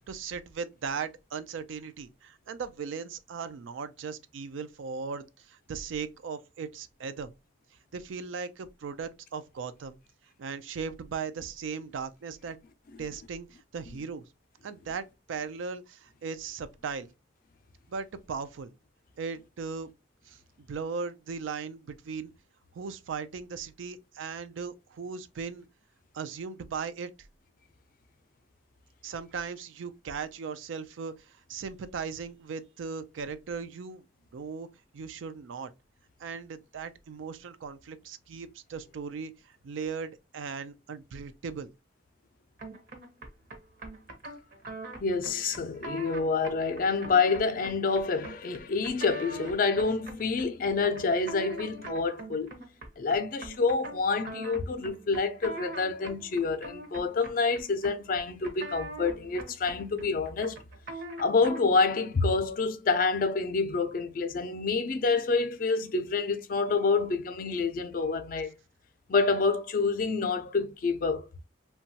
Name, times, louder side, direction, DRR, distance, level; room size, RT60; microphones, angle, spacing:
voice 1, 0.0-7.3 7.9-10.0 10.4-12.6 13.0-14.3 14.6-17.1 17.9-18.7 19.2-19.9 20.3-22.3 22.7-25.7 26.1-27.1 29.0-34.0 34.3-34.7 34.9-35.7 36.2-41.7, right 5 dB, 85° right, 0.4 m, -38 dB
sound 1, 42.6-61.8, right 2 dB, 50° right, 0.7 m, -43 dB
voice 2, 45.0-52.5 53.0-60.6 61.2-68.5 69.1-71.5, left 4 dB, 45° left, 0.4 m, -27 dB
2.9 x 2.2 x 2.7 m
head